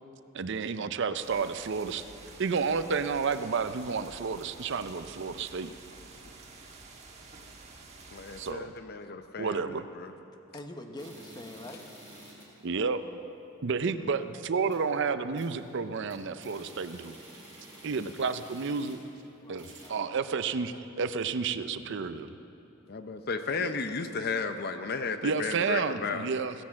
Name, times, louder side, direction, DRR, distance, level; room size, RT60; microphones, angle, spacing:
voice 1, 0.3-2.0 2.4-5.7 8.4-8.7 9.4-9.8 12.6-13.0 13.6-17.2 17.8-19.0 19.5-22.3 23.6-23.7 25.2-26.5, right 5 dB, 60° right, 11 dB, 0.5 m, -31 dB
sound 1, 1.2-8.5, right 3 dB, 30° right, 1.4 m, -50 dB
voice 2, 8.1-10.1 22.9-26.3, left 4 dB, 50° left, 9 dB, 0.6 m, -34 dB
voice 3, 10.5-11.9 13.8-13.9 19.4-20.0, left 1 dB, 20° left, 5 dB, 1.0 m, -44 dB
sound 2, 11.0-12.6 13.0-13.1 13.4-13.5 14.0-14.2 14.5-14.9 15.4-15.7 16.0-19.2 19.5-19.9, right 1 dB, 10° right, 4.0 m, -51 dB
16.0 x 10.5 x 7.4 m, 2.9 s
head